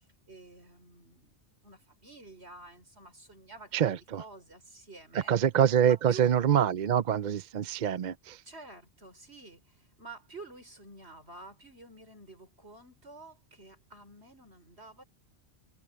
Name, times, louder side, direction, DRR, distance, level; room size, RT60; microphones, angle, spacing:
voice 1, 0.0-5.4 5.9-6.3 8.5-15.0, right 3 dB, 70° right, 5.4 m, -50 dB
voice 2, 3.7-4.2 5.3-8.4, right 9 dB, 50° right, 0.6 m, -25 dB
omnidirectional pair, 1.1 m